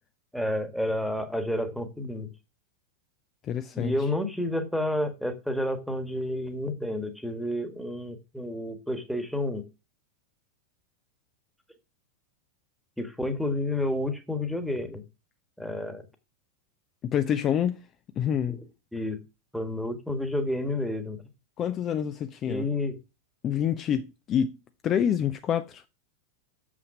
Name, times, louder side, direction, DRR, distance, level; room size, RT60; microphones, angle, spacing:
voice 1, 0.3-2.3 3.7-9.6 13.0-15.0 15.6-16.1 18.5-18.6 18.9-19.2 19.5-21.2 22.5-23.0, left 1 dB, ahead, 1.6 m, -30 dB
voice 2, 3.4-3.9 17.0-17.8 18.2-18.6 21.6-22.6 23.4-24.6 24.8-25.8, left 9 dB, 30° left, 0.6 m, -27 dB
7.2 x 6.1 x 6.0 m
figure-of-eight pair, 90°, 0 cm